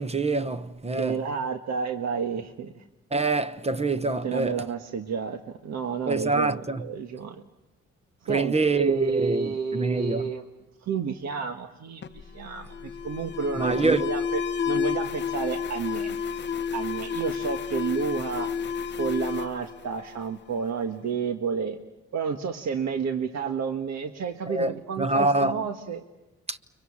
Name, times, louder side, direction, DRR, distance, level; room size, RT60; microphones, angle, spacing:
voice 1, 0.0-1.2 3.1-4.5 6.1-6.8 8.3-10.3 13.6-14.0 24.5-25.6 26.5-26.6, right 3 dB, 20° right, 1.0 m, -25 dB
voice 2, 1.0-2.8 4.2-7.4 8.2-10.4 10.8-16.2 16.7-18.5 19.0-21.8 22.1-26.0, right 6 dB, 60° right, 1.6 m, -30 dB
Alarm, 12.0-20.6, left 6 dB, 35° left, 0.8 m, -31 dB
30.0 x 24.0 x 7.3 m
cardioid pair, 90°, 30 cm